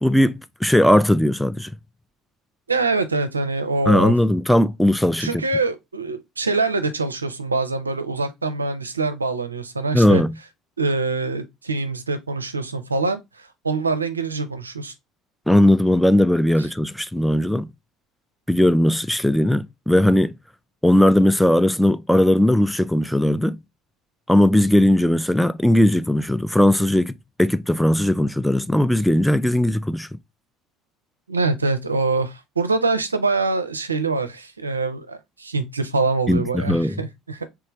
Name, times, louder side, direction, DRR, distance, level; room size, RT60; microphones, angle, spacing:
voice 1, 0.0-1.7 3.9-5.4 9.9-10.4 15.5-17.7 18.5-20.3 20.8-23.6 24.3-30.1 36.3-36.9, left 1 dB, ahead, 0.3 m, -18 dB
voice 2, 2.7-4.1 5.2-10.2 10.8-14.9 31.3-37.5, right 3 dB, 85° right, 0.4 m, -24 dB
3.4 x 3.3 x 2.9 m
figure-of-eight pair, 60°, 0 cm